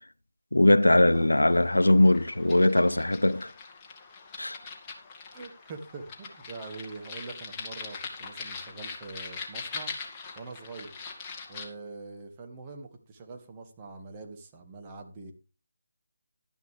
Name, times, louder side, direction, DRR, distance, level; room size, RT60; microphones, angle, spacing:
voice 1, 0.5-3.5 4.4-4.6, left 1 dB, 85° left, 0.7 m, -21 dB
sound 1, 1.1-11.7, left 4 dB, 20° left, 2.1 m, -42 dB
voice 2, 5.3-9.9 10.4-10.9 11.5-15.3, right 3 dB, 20° right, 1.9 m, -44 dB
12.0 x 10.5 x 3.4 m
figure-of-eight pair, 160°, 0 cm